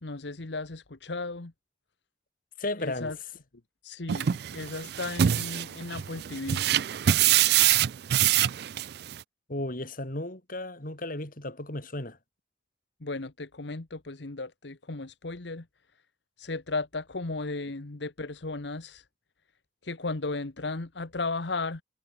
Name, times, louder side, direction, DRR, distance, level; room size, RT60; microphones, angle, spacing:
voice 1, 0.0-1.5 2.8-3.2 3.8-6.6 13.0-15.7 16.4-19.1 19.8-21.8, left 3 dB, 70° left, 1.2 m, -35 dB
voice 2, 2.6-3.1 9.5-12.2, left 1 dB, 50° left, 3.9 m, -34 dB
sound 1, 4.1-9.2, right 11 dB, 60° right, 0.4 m, -25 dB
head